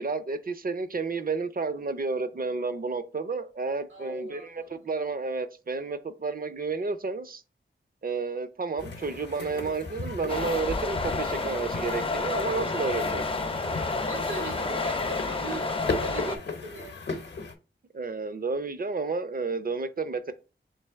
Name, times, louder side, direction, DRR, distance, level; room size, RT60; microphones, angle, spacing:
voice 1, 0.0-7.4 8.0-13.2 17.9-20.3, right 4 dB, 45° right, 0.5 m, -31 dB
voice 2, 3.9-4.9 14.0-15.7 16.0-16.9, right 1 dB, 75° right, 1.9 m, -39 dB
sound 1, 8.8-17.5, left 3 dB, 60° left, 0.7 m, -37 dB
sound 2, 10.3-16.4, left 3 dB, 25° left, 0.4 m, -30 dB
3.2 x 3.1 x 3.4 m
wide cardioid pair, 70°, 20 cm